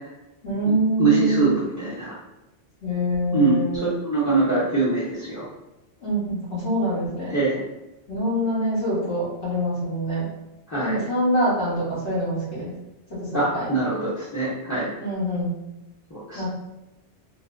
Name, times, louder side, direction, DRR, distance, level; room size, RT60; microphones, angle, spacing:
voice 1, 0.4-1.6 2.8-3.9 6.0-7.4 8.1-10.3 10.8-12.7 13.1-13.7 15.0-15.6 16.3-16.5, equal, 90° left, -9 dB, 1.7 m, -25 dB
voice 2, 1.0-2.1 3.3-5.4 7.3-7.6 10.7-11.0 13.3-14.9 16.1-16.5, right 3 dB, 20° left, -8 dB, 0.5 m, -23 dB
3.9 x 2.1 x 2.5 m, 0.95 s
omnidirectional pair, 1.1 m